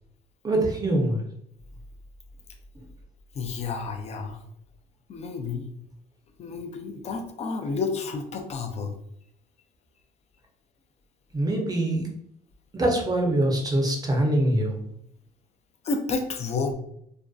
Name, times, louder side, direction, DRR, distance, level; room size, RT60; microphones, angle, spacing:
voice 1, 0.4-1.2 11.3-12.1 12.7-14.8, right 1 dB, 20° right, 1 dB, 0.6 m, -23 dB
voice 2, 3.3-4.4 5.1-5.7 6.4-8.9 15.8-16.7, left 4 dB, 40° left, 5 dB, 0.4 m, -30 dB
2.5 x 2.1 x 2.3 m, 0.73 s
cardioid pair, 110°, 17 cm